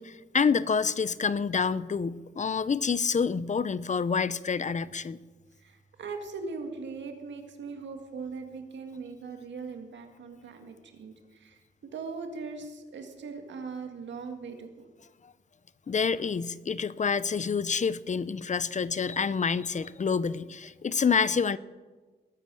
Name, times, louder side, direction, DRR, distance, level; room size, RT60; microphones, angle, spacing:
voice 1, 0.0-5.2 15.9-21.6, left 5 dB, 40° left, 17 dB, 0.6 m, -27 dB
voice 2, 5.6-14.9, right 4 dB, 85° right, 5 dB, 1.9 m, -40 dB
20.0 x 9.5 x 6.3 m, 1.3 s
cardioid pair, 70°, 18 cm